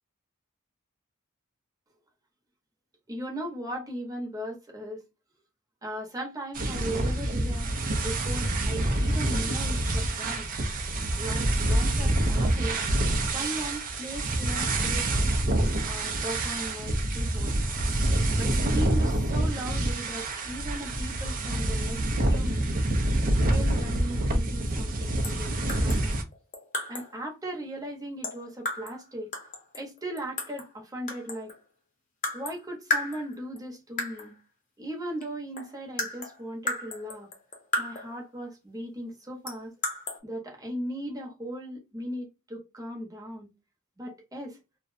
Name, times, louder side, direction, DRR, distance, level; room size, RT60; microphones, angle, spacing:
voice 1, 3.1-5.0 5.8-7.7 8.0-10.5 11.2-12.8 13.3-15.1 15.9-17.5 18.4-22.7 23.5-26.2 26.9-29.3 29.7-31.5 32.3-34.3 34.8-37.3 37.8-39.7 40.2-43.5 44.0-44.6, right 1 dB, 20° right, 0.8 m, -38 dB
sound 1, 6.5-26.2, right 1 dB, 40° right, 0.4 m, -27 dB
sound 2, 25.2-25.4 25.7-27.2 28.2-29.0 29.3-30.7 31.1-31.6 32.2-32.6 32.9-33.6 34.0-34.3 35.2-35.3 35.6-38.2 39.5-40.2, left 2 dB, 40° left, 0.7 m, -34 dB
2.5 x 2.1 x 2.5 m
head